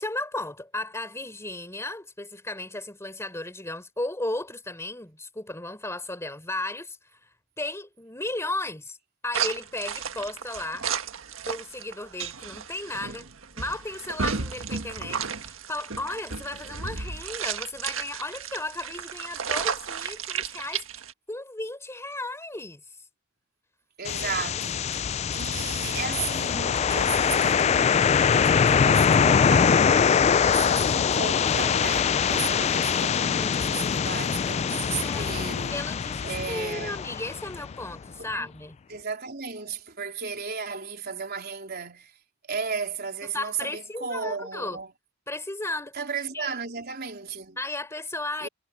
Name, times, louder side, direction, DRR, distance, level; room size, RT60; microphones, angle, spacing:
voice 1, 0.0-7.3 7.6-9.0 9.2-10.9 11.4-13.3 13.6-20.8 21.3-22.8 24.0-24.4 35.0-35.3 35.7-38.8 43.2-44.8 45.3-46.0 46.3-46.6 47.6-48.5, left 2 dB, 15° left, 3.8 m, -35 dB
sound 1, 9.3-21.1, right 6 dB, 80° right, 1.6 m, -33 dB
voice 2, 24.0-28.0 28.4-29.9 30.4-35.9 36.2-37.0 38.3-38.5 38.9-42.1 42.5-44.9 45.9-47.6 48.4-48.5, right 5 dB, 50° right, 3.8 m, -35 dB
sound 2, 24.1-37.9, left 7 dB, 30° left, 0.3 m, -23 dB
head